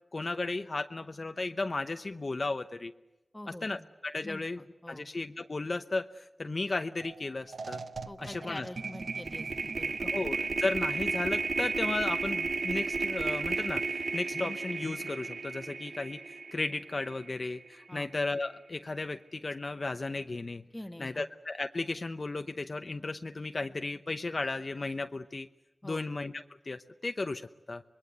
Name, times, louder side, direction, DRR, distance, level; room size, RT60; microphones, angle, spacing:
voice 1, 0.1-2.9 3.6-4.6 4.9-7.8 8.2-8.7 10.0-20.6 21.0-25.5 25.8-27.8, left 3 dB, 55° left, 7 dB, 0.8 m, -35 dB
voice 2, 3.3-3.8 4.2-5.1 8.0-10.2 17.9-18.1 20.7-21.3 25.8-26.1, left 1 dB, 15° left, 8 dB, 1.4 m, -45 dB
sound 1, 7.0-7.2 7.5-17.7, right 4 dB, 90° right, 0.8 m, -34 dB
25.0 x 21.5 x 8.0 m, 0.99 s
wide cardioid pair, 75°, 0 cm